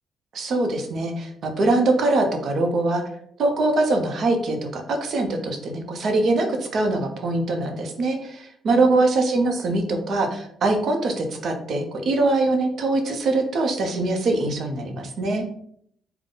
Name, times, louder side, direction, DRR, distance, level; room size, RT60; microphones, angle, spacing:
voice 1, 0.3-3.0 3.4-15.4, right 2 dB, 60° right, 4 dB, 0.7 m, -23 dB
3.7 x 2.2 x 3.9 m, 0.70 s
cardioid pair, 90°, 0 cm